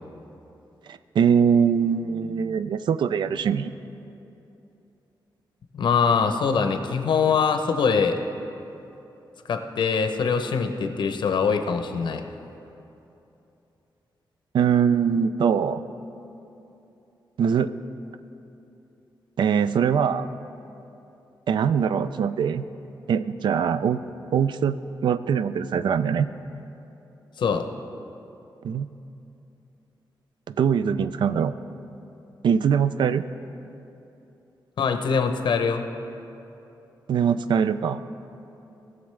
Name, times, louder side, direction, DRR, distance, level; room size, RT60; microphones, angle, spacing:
voice 1, 0.9-3.7 14.5-15.8 17.4-17.7 19.4-20.3 21.5-22.6 23.1-24.0 24.3-24.8 25.0-26.3 28.6-28.9 30.5-31.5 32.4-33.3 37.1-38.0, right 7 dB, 70° right, 13 dB, 0.4 m, -22 dB
voice 2, 5.7-8.2 9.5-12.2 27.4-27.7 34.8-35.9, left 5 dB, 70° left, 6 dB, 0.7 m, -23 dB
19.0 x 7.0 x 3.2 m, 2.9 s
wide cardioid pair, 165°, 8 cm